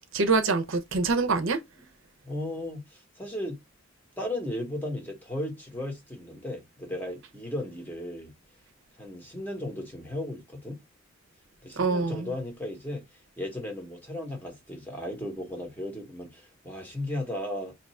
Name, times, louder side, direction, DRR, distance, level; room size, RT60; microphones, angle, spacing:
voice 1, 0.1-1.6 11.8-12.3, right 3 dB, 65° right, 0.6 m, -25 dB
voice 2, 2.2-3.6 4.2-8.3 9.0-10.8 11.6-17.7, left 1 dB, 10° left, 0.8 m, -35 dB
2.7 x 2.3 x 4.1 m
head